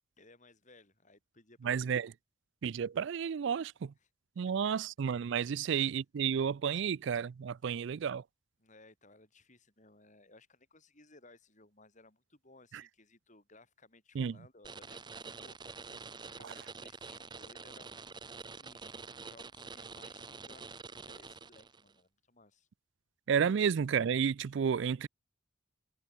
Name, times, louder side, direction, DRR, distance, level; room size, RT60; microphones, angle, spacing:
voice 1, 0.2-1.9 4.0-4.1 4.4-4.6 5.5-5.8 8.6-18.1 18.4-22.7, left 2 dB, 35° left, 7.8 m, -61 dB
voice 2, 1.6-2.1 2.6-3.9 4.4-8.2 14.2-14.3 16.4-16.5 23.3-25.1, right 7 dB, 60° right, 0.4 m, -31 dB
sound 1, 14.6-21.9, right 4 dB, 20° right, 0.9 m, -47 dB
head